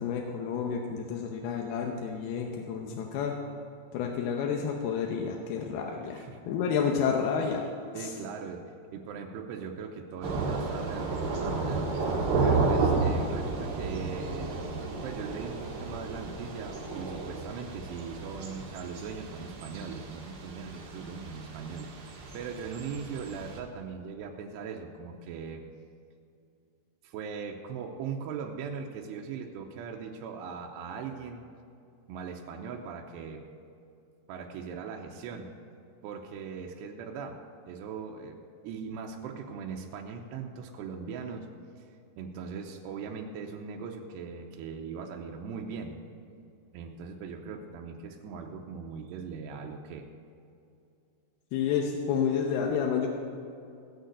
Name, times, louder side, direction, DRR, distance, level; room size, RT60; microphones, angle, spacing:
voice 1, 0.0-3.4 3.9-7.7 7.9-8.1 51.5-53.1, left 7 dB, 75° left, 1 dB, 2.6 m, -30 dB
voice 2, 7.9-14.6 15.0-25.7 27.0-31.4 32.1-33.5 34.3-35.5 36.0-37.4 37.7-41.5 41.8-41.9 42.2-46.0 46.7-50.1, right 6 dB, 85° right, 1 dB, 2.8 m, -40 dB
Thunder / Rain, 10.2-23.6, right 3 dB, 50° right, 2.4 m, -32 dB
17.0 x 6.5 x 7.9 m, 2.5 s
omnidirectional pair, 5.0 m